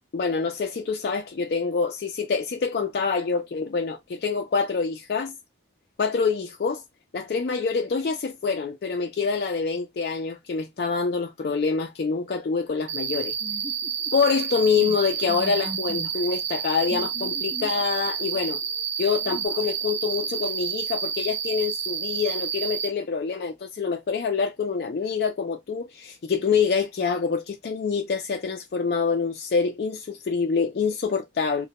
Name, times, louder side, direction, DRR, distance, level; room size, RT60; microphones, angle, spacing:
voice 1, 0.1-5.3 6.0-6.8 7.1-13.3 14.1-18.6 19.0-31.7, left 5 dB, 60° left, 0.3 m, -26 dB
Cricket, 12.9-22.9, right 6 dB, 85° right, 0.6 m, -30 dB
sound 1, 13.4-14.1 14.4-14.5 14.8-15.0 15.2-16.1 16.9-17.9 18.4-18.8 19.2-19.5, right 1 dB, 20° right, 0.8 m, -39 dB
2.1 x 2.1 x 2.7 m
head